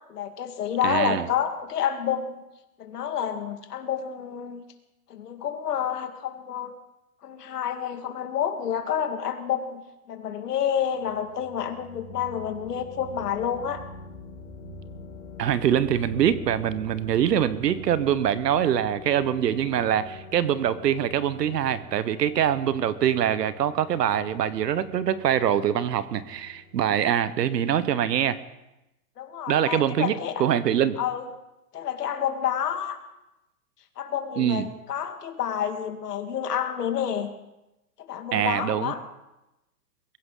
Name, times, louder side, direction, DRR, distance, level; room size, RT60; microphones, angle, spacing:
voice 1, 0.1-2.4 2.8-4.6 5.1-6.7 7.2-9.8 10.1-13.8 29.2-30.4 31.0-31.3 31.7-33.0 34.0-37.3 38.0-39.0, left 9 dB, 75° left, 6 dB, 2.2 m, -29 dB
voice 2, 0.8-1.3 15.4-28.4 29.5-30.1 30.4-31.0 34.4-34.6 38.3-38.9, right 10 dB, 85° right, 15 dB, 1.2 m, -24 dB
sound 1, 10.6-27.3, left 1 dB, 45° left, 3.4 m, -44 dB
22.5 x 16.0 x 3.9 m, 0.96 s
hypercardioid pair, 175°, 47 cm